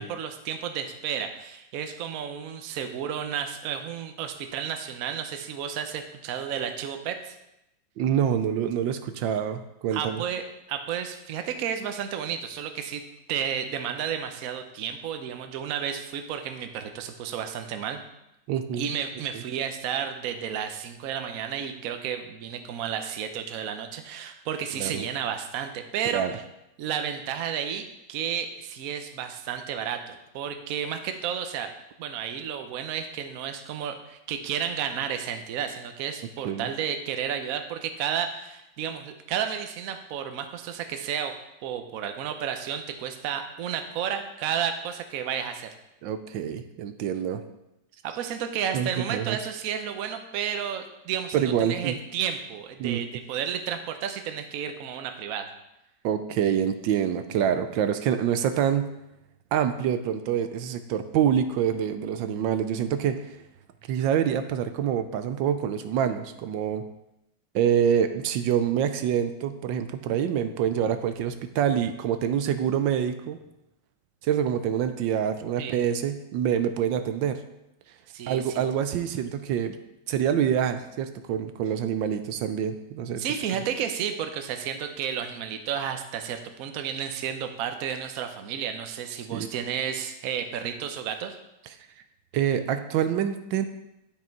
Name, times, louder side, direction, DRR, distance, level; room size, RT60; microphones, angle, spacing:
voice 1, 0.0-7.4 9.9-10.4 10.7-13.0 13.3-18.0 18.7-26.2 26.8-31.7 32.0-41.3 41.6-45.7 48.0-55.5 75.6-75.8 78.1-78.6 83.2-91.4, right 8 dB, 60° right, 7 dB, 1.0 m, -32 dB
voice 2, 8.0-10.2 18.5-18.9 19.3-19.4 24.8-25.0 26.1-26.3 36.4-36.7 46.0-47.4 48.7-49.4 51.3-51.9 52.8-53.1 56.0-58.9 59.5-63.2 63.9-66.8 67.5-73.4 74.2-77.4 78.3-79.8 80.1-83.2 89.3-89.5 92.3-93.7, right 9 dB, 80° right, 9 dB, 1.3 m, -26 dB
9.9 x 5.5 x 4.5 m, 0.88 s
omnidirectional pair, 2.1 m